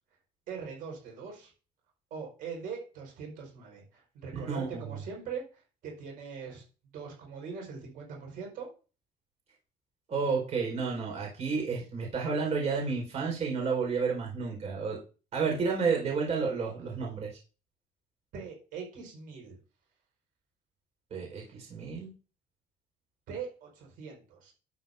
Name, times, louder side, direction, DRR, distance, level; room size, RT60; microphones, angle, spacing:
voice 1, 0.5-1.5 2.1-6.6 6.9-8.7 18.3-19.6 23.3-24.5, right 6 dB, 70° right, 0 dB, 4.9 m, -41 dB
voice 2, 4.3-4.9 10.1-15.0 15.3-17.3 21.1-22.1, right 5 dB, 45° right, 0 dB, 4.7 m, -31 dB
12.0 x 8.3 x 2.7 m, 0.35 s
cardioid pair, 150°, 15 cm